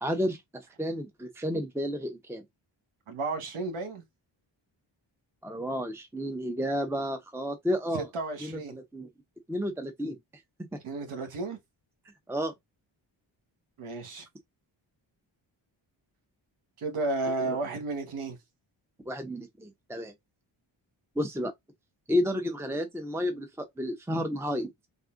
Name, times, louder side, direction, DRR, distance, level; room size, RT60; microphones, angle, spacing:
voice 1, 0.0-2.4 5.4-8.1 8.4-9.1 9.5-10.2 12.3-12.5 17.4-17.6 19.1-20.1 21.2-21.5 22.1-24.7, equal, 5° right, 0.7 m, -31 dB
voice 2, 3.1-4.0 7.9-8.7 10.8-11.6 13.8-14.3 16.8-18.4, right 3 dB, 85° right, 1.3 m, -33 dB
3.5 x 2.4 x 3.7 m
cardioid pair, 60°, 49 cm